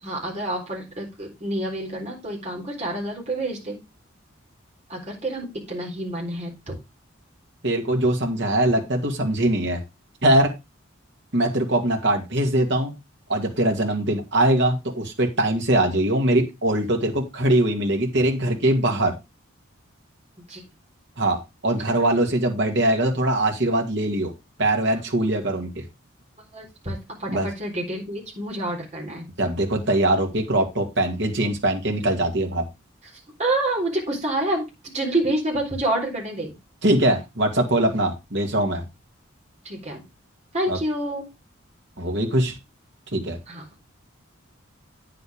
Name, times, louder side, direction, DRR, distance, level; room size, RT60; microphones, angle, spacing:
voice 1, 0.0-3.8 4.9-6.7 20.5-20.6 25.2-25.3 26.5-29.3 33.4-36.5 39.6-40.0 40.5-41.2 43.5-43.6, right 1 dB, 35° right, -1 dB, 4.0 m, -28 dB
voice 2, 7.6-9.8 10.2-10.5 11.3-12.9 13.3-19.1 21.2-24.3 24.6-25.8 27.3-27.5 29.4-32.6 36.8-38.8 40.7-40.8 42.0-42.5 43.1-43.4, right 1 dB, 60° right, 2 dB, 2.2 m, -22 dB
9.1 x 7.9 x 3.5 m, 0.24 s
head